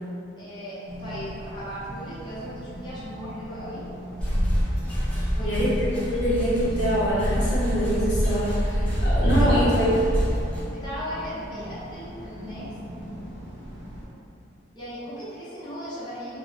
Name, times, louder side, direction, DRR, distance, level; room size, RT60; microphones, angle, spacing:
voice 1, 0.4-3.8 5.3-5.6 9.2-9.8 10.4-12.7 14.7-16.4, equal, 25° left, -12 dB, 0.8 m, -37 dB
sound 1, 0.9-14.1, right 1 dB, 85° right, 0.5 m, -40 dB
sound 2, 4.2-10.6, equal, 5° left, 0.4 m, -25 dB
voice 2, 5.3-5.7 6.0-9.9, equal, 70° left, -9 dB, 0.7 m, -25 dB
2.3 x 2.1 x 3.9 m, 2.7 s
head